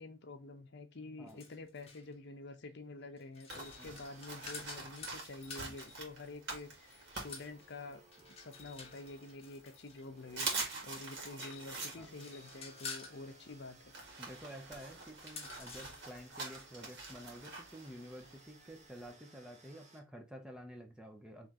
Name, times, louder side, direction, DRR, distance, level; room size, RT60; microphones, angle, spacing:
voice 1, 0.0-8.0 8.3-10.5 10.8-13.9, left 2 dB, 55° left, 0.7 m, -48 dB
sound 1, 1.3-2.1 3.2-6.0 6.9-10.8 11.3-13.2 15.0-16.3, left 5 dB, 30° left, 1.2 m, -50 dB
sound 2, 3.5-8.1 8.6-9.5 9.9-10.0 10.3-19.1, right 3 dB, 55° right, 1.9 m, -45 dB
sound 3, 3.6-20.0, right 2 dB, 35° right, 1.0 m, -62 dB
voice 2, 14.2-21.5, equal, 5° right, 0.7 m, -51 dB
4.4 x 3.2 x 3.6 m
head